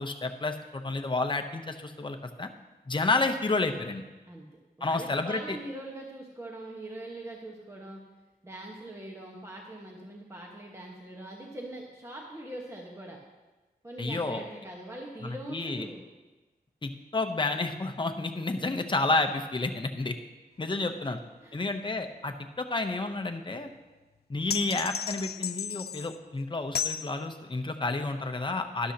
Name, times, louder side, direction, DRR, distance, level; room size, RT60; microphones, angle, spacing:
voice 1, 0.0-2.5 2.9-4.1 4.8-5.6 14.0-14.4 15.2-15.9 16.8-20.1 20.6-21.2 21.5-23.7 24.3-28.9, left 3 dB, 30° left, 6 dB, 0.8 m, -30 dB
voice 2, 4.8-8.0 8.4-13.2 13.8-16.0 20.6-20.7 21.4-21.6, right 1 dB, 15° right, -1 dB, 1.3 m, -42 dB
sound 1, 24.5-26.2 26.7-27.1, left 8 dB, 75° left, 0.4 m, -33 dB
12.5 x 11.5 x 2.9 m, 1.2 s
wide cardioid pair, 105°, 16 cm